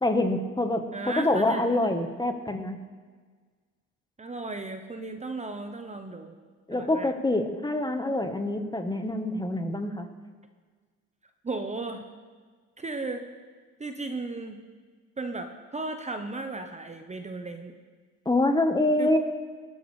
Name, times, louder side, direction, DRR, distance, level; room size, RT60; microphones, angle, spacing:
voice 1, 0.0-2.8 6.7-10.1 18.2-19.2, left 2 dB, 15° left, 6 dB, 1.2 m, -26 dB
voice 2, 0.9-1.9 4.2-6.3 6.7-7.1 11.4-12.0 12.8-13.2 13.8-14.6 15.2-17.7 19.0-19.2, right 3 dB, 20° right, 6 dB, 0.9 m, -35 dB
19.0 x 9.5 x 3.3 m, 1.5 s
cardioid pair, 80°, 31 cm